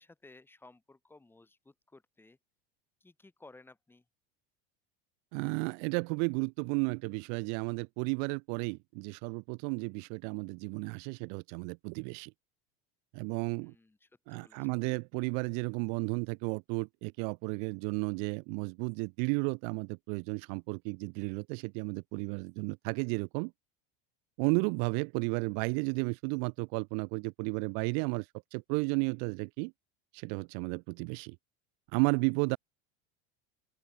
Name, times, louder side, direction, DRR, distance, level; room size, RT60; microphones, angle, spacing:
voice 1, 0.0-2.4 3.0-4.1 13.6-14.8, left 2 dB, 5° left, 4.3 m, -58 dB
voice 2, 5.3-12.3 13.1-13.7 14.3-23.5 24.4-29.7 30.1-31.3 31.9-32.6, right 40 dB or more, 60° right, 1.0 m, -33 dB
open air
cardioid pair, 160°, 30 cm